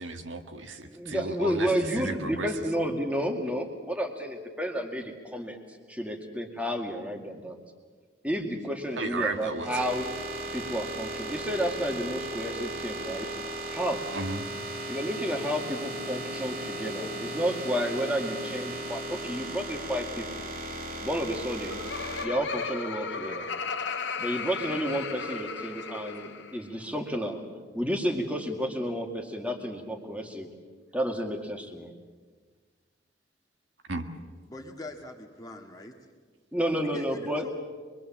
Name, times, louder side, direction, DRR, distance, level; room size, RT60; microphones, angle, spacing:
voice 1, 0.0-2.5 9.0-9.7 14.1-14.5 33.9-34.1, right 3 dB, 80° right, 5 dB, 1.8 m, -34 dB
voice 2, 0.8-5.6 5.9-7.6 8.2-10.1 10.5-13.3 13.7-14.1 14.9-20.5 21.0-21.8 22.2-23.5 24.2-27.4 27.7-30.5 30.9-31.9 36.5-37.5, equal, 5° right, 3 dB, 2.2 m, -31 dB
sound 1, 8.8-22.3, right 1 dB, 45° right, 2.6 m, -37 dB
Laughter, 21.5-26.6, left 4 dB, 70° left, 1.6 m, -35 dB
voice 3, 34.5-36.1 36.9-37.5, left 1 dB, 20° left, 2 dB, 1.9 m, -43 dB
25.0 x 22.5 x 7.4 m, 1.5 s
head